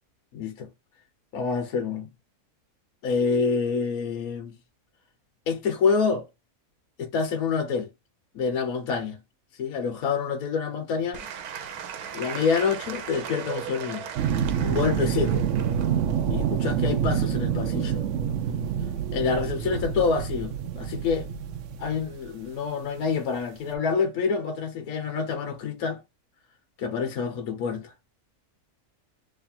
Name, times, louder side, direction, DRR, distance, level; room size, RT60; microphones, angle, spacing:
voice 1, 0.3-0.7 1.3-2.1 3.0-4.5 5.5-6.3 7.0-7.9 8.3-9.2 9.6-11.2 12.1-14.0 14.6-15.4 16.3-18.0 19.1-21.3 21.8-26.0 26.8-27.9, left 5 dB, 75° left, 1.3 m, -27 dB
Applause / Crowd, 11.1-17.4, right 8 dB, 85° right, 1.2 m, -38 dB
sound 1, 14.2-22.3 23.7-23.8, right 8 dB, 70° right, 0.8 m, -27 dB
3.2 x 2.5 x 4.2 m
omnidirectional pair, 1.5 m